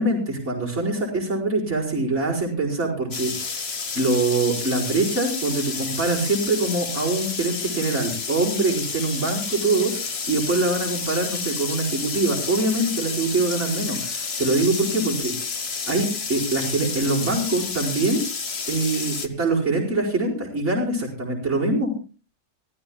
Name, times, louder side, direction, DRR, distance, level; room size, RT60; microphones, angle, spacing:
voice 1, 0.0-3.7 4.0-15.3 15.9-18.2 18.7-21.9, right 2 dB, 55° right, -4 dB, 5.2 m, -24 dB
sound 1, 3.1-19.3, left 5 dB, 50° left, 1.4 m, -30 dB
24.0 x 14.5 x 2.3 m, 0.35 s
omnidirectional pair, 1.4 m